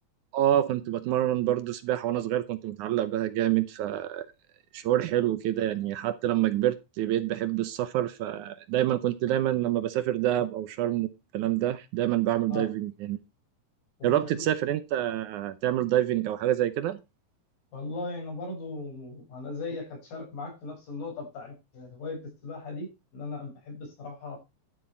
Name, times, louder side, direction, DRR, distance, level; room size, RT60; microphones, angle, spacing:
voice 1, 0.3-4.3 4.7-11.1 11.3-13.2 14.0-17.0, right 12 dB, 75° right, 13 dB, 2.0 m, -27 dB
voice 2, 14.0-14.5 17.7-24.4, left 3 dB, 75° left, 2 dB, 6.7 m, -38 dB
12.0 x 7.4 x 4.4 m, 0.26 s
omnidirectional pair, 4.0 m